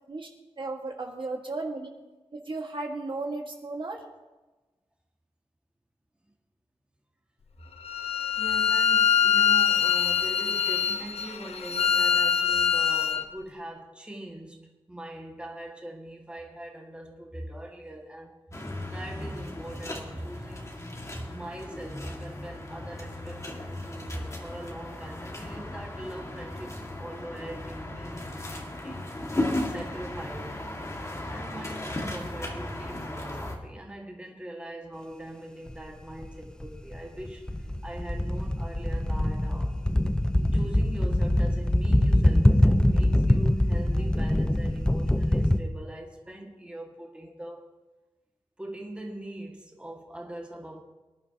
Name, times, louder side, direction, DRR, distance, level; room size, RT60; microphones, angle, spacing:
voice 1, 0.6-1.9 2.3-4.0 44.0-44.1, right 3 dB, 55° right, 1.7 m, -35 dB
Bowed string instrument, 7.8-13.2, left 7 dB, 85° left, 0.7 m, -24 dB
voice 2, 8.4-18.4 18.9-20.7 21.1-28.4 28.7-29.1 29.7-30.8 31.3-39.8 40.5-47.7 48.6-50.8, right 1 dB, 10° right, 1.8 m, -42 dB
sound 1, 18.5-33.6, left 1 dB, 30° left, 1.9 m, -36 dB
sound 2, 35.7-35.8 36.2-45.6, left 1 dB, 10° left, 0.7 m, -23 dB
24.5 x 11.0 x 2.9 m
wide cardioid pair, 110°, 10 cm